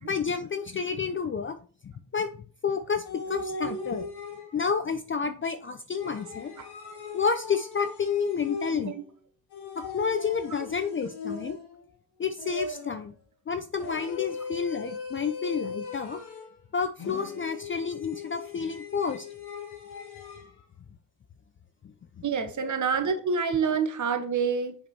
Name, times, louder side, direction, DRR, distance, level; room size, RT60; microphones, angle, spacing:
voice 1, 0.0-1.6 1.8-2.3 2.6-4.1 4.5-6.5 7.1-8.9 9.8-11.6 12.2-13.1 13.5-16.2 16.7-19.3 22.6-22.7, left 6 dB, 25° left, 0.5 m, -30 dB
sound 1, 3.0-4.8 6.0-9.0 9.5-11.9 12.4-13.1 13.8-16.6 17.0-20.5, left 4 dB, 50° left, 2.0 m, -39 dB
voice 2, 22.2-24.8, right 6 dB, 35° right, 1.2 m, -27 dB
6.9 x 4.9 x 2.8 m
hypercardioid pair, 50°, 50 cm